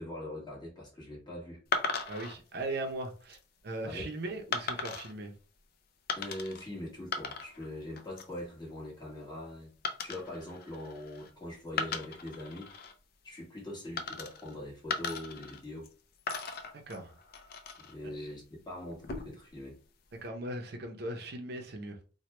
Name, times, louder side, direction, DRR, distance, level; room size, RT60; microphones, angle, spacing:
voice 1, 0.0-1.6 3.8-4.0 6.2-9.7 10.0-12.7 13.2-15.9 17.8-19.8, left 1 dB, 25° left, 1.3 m, -42 dB
sound 1, 1.7-2.3 3.0-3.4 4.5-5.1 6.1-6.6 6.9-7.7 8.0-8.4 9.8-11.3 11.7-12.9 14.0-14.5 14.9-15.9 16.3-17.9 18.9-19.5, left 4 dB, 55° left, 0.4 m, -37 dB
voice 2, 2.1-3.4 3.6-5.3 16.7-17.1 20.2-22.0, right 2 dB, 60° right, 0.6 m, -38 dB
3.0 x 2.2 x 3.2 m
head